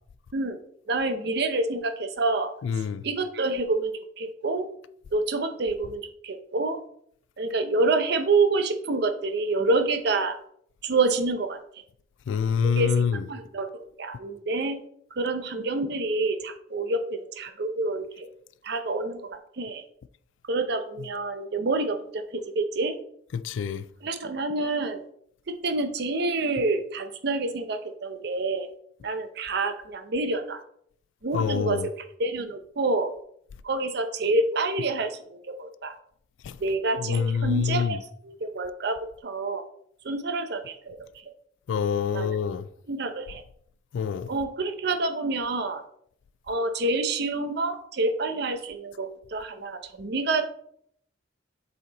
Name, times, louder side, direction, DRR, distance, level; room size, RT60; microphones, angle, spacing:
voice 1, 0.9-4.7 5.1-6.8 7.4-10.4 10.8-11.8 12.6-14.8 15.1-18.3 18.6-19.8 20.5-22.9 24.0-25.0 25.6-28.7 29.0-30.6 31.2-31.9 32.2-33.1 33.6-35.9 36.6-39.6 40.0-41.0 42.1-42.4 42.9-43.4 44.3-45.8 46.5-50.5, right 3 dB, 55° right, 0.6 m, -28 dB
voice 2, 2.6-3.0 12.3-13.2 23.3-23.8 31.3-31.9 36.4-36.6 37.0-38.0 41.7-42.7 43.9-44.3, left 6 dB, 75° left, 0.3 m, -26 dB
7.5 x 4.2 x 4.0 m
head